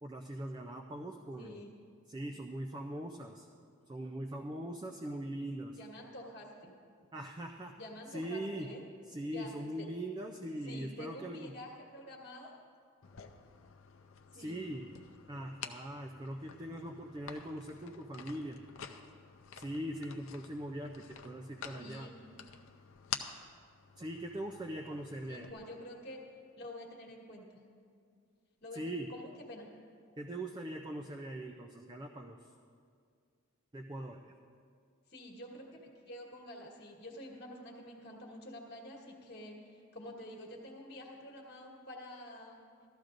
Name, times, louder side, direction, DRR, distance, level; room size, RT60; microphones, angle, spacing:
voice 1, 0.0-1.6 2.1-3.5 3.9-5.8 7.1-7.7 8.1-8.7 9.1-11.5 14.3-14.9 15.3-18.7 19.6-22.1 24.0-25.5 28.7-29.1 30.2-32.5 33.7-34.3, right 1 dB, 20° right, 3 dB, 0.4 m, -41 dB
voice 2, 1.4-1.7 5.8-6.7 7.8-8.8 9.3-9.5 9.8-9.9 10.6-12.5 14.3-14.6 21.7-22.1 25.3-26.3 26.5-27.6 28.6-29.7 35.1-42.6, left 1 dB, 45° left, -1 dB, 1.4 m, -48 dB
sound 1, 13.0-25.5, left 8 dB, 65° left, 0.6 m, -49 dB
15.5 x 13.0 x 2.6 m, 2.2 s
head